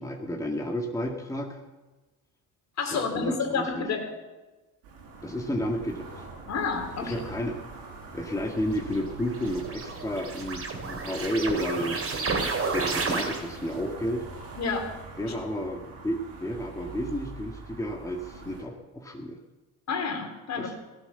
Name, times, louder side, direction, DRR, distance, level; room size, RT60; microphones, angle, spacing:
voice 1, 0.0-1.6 2.9-3.9 5.2-6.3 7.0-7.6 8.1-14.3 15.2-19.4 20.6-20.8, equal, 10° left, 1 dB, 1.8 m, -32 dB
voice 2, 2.8-4.1 6.5-7.2 14.6-14.9 15.2-15.3 19.9-20.7, left 5 dB, 50° left, 4 dB, 3.4 m, -30 dB
sound 1, 4.8-18.6, right 3 dB, 75° right, 5.2 m, -44 dB
sound 2, 8.8-13.7, right 4 dB, 40° right, 3.4 m, -31 dB
16.5 x 11.0 x 6.9 m, 1.2 s
supercardioid pair, 80°, 36 cm